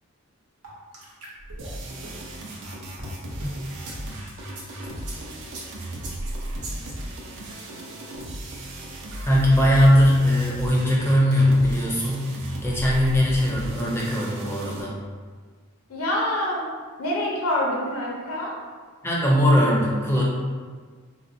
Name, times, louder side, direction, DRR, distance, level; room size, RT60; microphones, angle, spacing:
sound 1, 0.6-4.0 4.4-7.0, right 1 dB, 85° right, 0.9 m, -38 dB
sound 2, 1.6-14.8, right 1 dB, 55° right, 0.5 m, -35 dB
voice 1, 9.2-14.9 19.0-20.2, equal, 10° left, -4 dB, 0.5 m, -20 dB
voice 2, 15.9-16.7 17.0-18.5, left 1 dB, 70° left, -3 dB, 0.6 m, -26 dB
3.9 x 2.1 x 2.6 m, 1.5 s
head